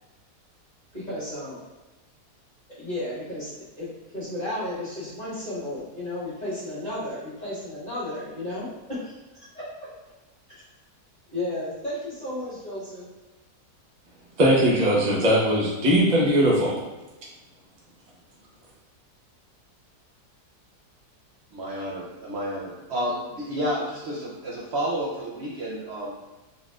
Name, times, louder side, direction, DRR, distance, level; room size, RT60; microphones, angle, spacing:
voice 1, 0.9-1.6 2.7-9.7 10.5-10.6 11.3-13.1, left 1 dB, 25° left, -12 dB, 1.7 m, -33 dB
voice 2, 14.4-16.8, equal, 30° right, -5 dB, 0.8 m, -20 dB
voice 3, 21.5-26.2, equal, 75° right, -4 dB, 0.6 m, -30 dB
3.9 x 3.6 x 2.4 m, 1.1 s
omnidirectional pair, 1.8 m